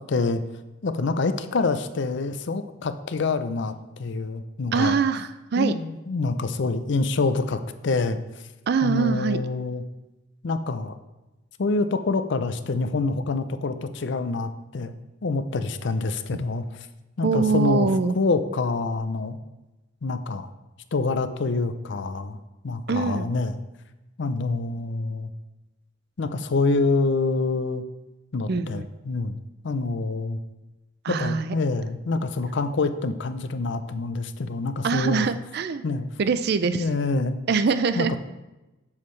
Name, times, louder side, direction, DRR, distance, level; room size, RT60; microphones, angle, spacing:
voice 1, 0.1-0.4 0.8-5.0 5.6-8.2 8.8-9.8 10.4-10.9 11.6-14.9 15.2-16.6 17.2-17.9 18.1-19.4 20.0-20.5 20.9-23.5 24.2-25.3 26.2-27.8 28.3-29.4 29.6-30.4 31.1-35.3 35.8-36.1 36.6-37.4 38.0-38.1, left 3 dB, 60° left, 11 dB, 0.5 m, -26 dB
voice 2, 4.7-5.8 8.7-9.4 17.2-18.1 22.9-23.3 28.5-28.9 31.0-31.5 34.8-35.8 36.2-36.9 37.5-38.1, right 5 dB, 55° right, 12 dB, 0.4 m, -23 dB
8.3 x 7.3 x 3.2 m, 1.0 s
head